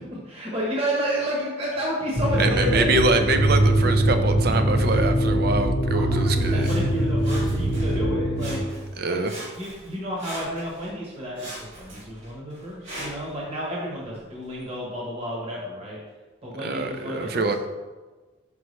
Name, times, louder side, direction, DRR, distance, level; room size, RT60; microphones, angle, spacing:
voice 1, 0.3-3.0 5.9-8.6 9.1-9.2 9.5-16.0 16.4-17.6, equal, 30° right, -4 dB, 1.1 m, -31 dB
sound 1, 2.1-8.6, right 1 dB, 35° left, 1.1 m, -22 dB
voice 2, 2.4-6.7 9.0-9.3 16.6-17.6, right 3 dB, 55° right, 7 dB, 0.5 m, -24 dB
Sawing, 6.6-8.0 8.3-9.0 9.2-10.9 11.3-13.3 14.0-14.1, right 1 dB, 70° right, 2.0 m, -40 dB
5.7 x 5.4 x 3.2 m, 1.3 s
head